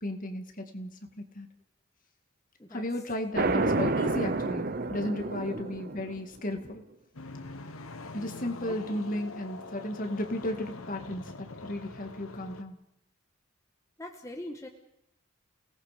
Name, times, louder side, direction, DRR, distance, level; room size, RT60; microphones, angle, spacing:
voice 1, 0.0-1.5 2.7-6.8 8.1-12.8, left 1 dB, 40° left, 4 dB, 2.1 m, -34 dB
sound 1, 3.3-6.2, right 2 dB, 45° right, 0.9 m, -29 dB
sound 2, 7.1-12.6, left 3 dB, 90° left, 1.3 m, -44 dB
voice 2, 8.7-9.0 14.0-14.7, left 1 dB, 15° left, 2 dB, 1.5 m, -42 dB
28.5 x 18.0 x 5.2 m, 0.81 s
head